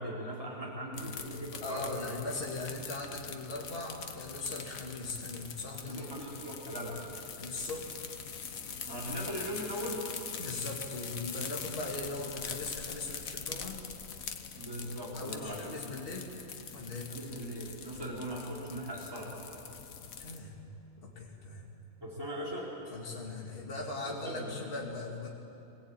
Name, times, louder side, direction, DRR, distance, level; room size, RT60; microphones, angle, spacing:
voice 1, 0.0-2.0 5.8-7.0 8.9-10.0 14.6-15.7 17.1-19.4 22.0-22.7 24.0-24.6, equal, 15° right, -4 dB, 4.4 m, -39 dB
sound 1, 0.9-20.4, left 6 dB, 85° left, 1.6 m, -43 dB
voice 2, 1.6-6.1 7.4-7.9 10.4-13.8 15.1-16.3 16.7-17.1 20.2-20.7 21.0-21.7 22.9-25.3, left 2 dB, 40° left, -2 dB, 2.5 m, -39 dB
23.5 x 17.5 x 8.9 m, 2.9 s
omnidirectional pair, 1.4 m